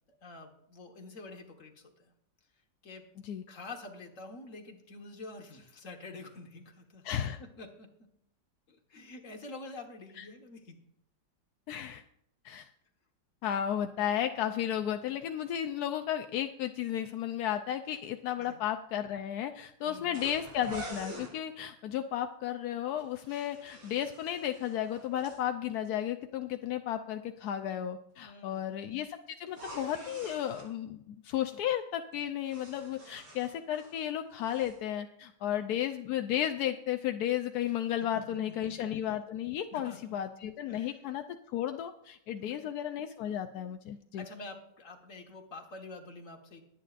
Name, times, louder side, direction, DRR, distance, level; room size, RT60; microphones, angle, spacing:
voice 1, 0.1-1.7 2.0-2.1 2.8-3.0 3.5-7.1 7.4-7.9 8.7-10.8 18.4-18.6 19.9-20.2 28.2-28.8 35.4-35.6 38.5-38.7 39.7-40.2 40.7-41.0 42.4-42.6 44.1-46.6, left 2 dB, 45° left, 3 dB, 1.8 m, -47 dB
voice 2, 7.0-7.4 10.2-10.3 11.7-12.0 12.4-12.7 13.4-41.2 41.5-44.2, left 10 dB, 70° left, 7 dB, 1.0 m, -34 dB
sound 1, 20.1-21.3 23.0-25.4 29.5-30.7 32.1-34.0 34.3-34.8, right 1 dB, 90° right, 4.1 m, -47 dB
21.5 x 9.1 x 2.5 m, 0.77 s
omnidirectional pair, 2.0 m